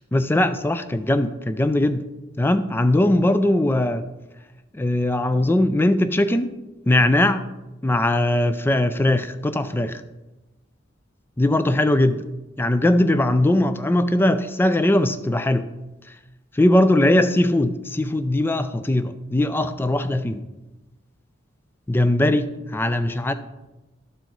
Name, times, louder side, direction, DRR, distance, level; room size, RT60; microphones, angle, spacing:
voice 1, 0.1-2.0 2.4-4.0 4.7-6.5 6.9-7.4 7.8-10.0 11.4-12.3 12.6-15.7 16.6-20.4 21.9-23.3, left 1 dB, 10° left, 11 dB, 0.3 m, -20 dB
12.5 x 4.6 x 3.9 m, 1.0 s
head